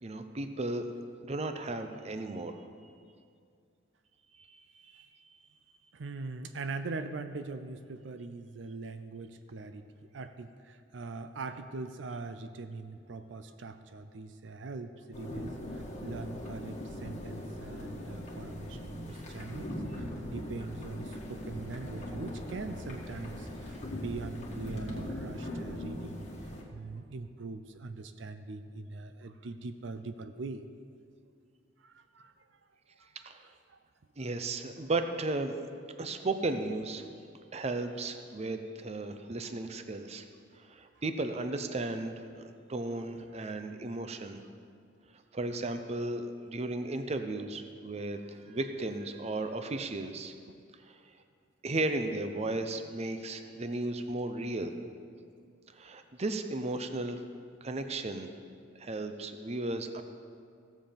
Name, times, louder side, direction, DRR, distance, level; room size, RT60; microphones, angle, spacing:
voice 1, 0.0-0.9 1.2-2.7 4.4-4.6 4.9-5.1 33.2-33.5 34.2-35.6 36.0-37.1 37.5-40.3 40.5-44.4 45.3-50.3 50.8-51.1 51.6-54.7 55.7-57.2 57.6-58.3 58.8-60.0, right 2 dB, 35° right, 8 dB, 0.6 m, -35 dB
voice 2, 5.9-9.9 10.1-30.6 31.8-32.5 33.0-33.3 33.7-33.8 50.5-50.6, right 3 dB, 75° right, 9 dB, 0.5 m, -42 dB
sound 1, 15.1-26.6, left 1 dB, 40° left, 1.7 m, -40 dB
16.0 x 7.4 x 5.1 m, 2.3 s
head